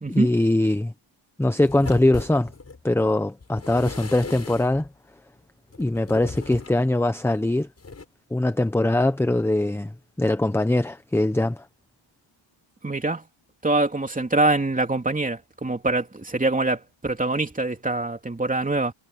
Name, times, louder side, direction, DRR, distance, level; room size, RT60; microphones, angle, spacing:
voice 1, 0.1-0.9 1.4-2.5 2.8-4.9 5.8-7.7 8.3-9.9 10.2-11.6, left 1 dB, 5° left, 0.8 m, -22 dB
sound 1, 1.6-2.8 3.4-4.9 5.7-6.9 7.8-8.0, left 4 dB, 30° left, 6.0 m, -38 dB
voice 2, 12.8-13.2 13.6-18.9, right 2 dB, 15° right, 3.0 m, -24 dB
wide cardioid pair, 145°, 50 cm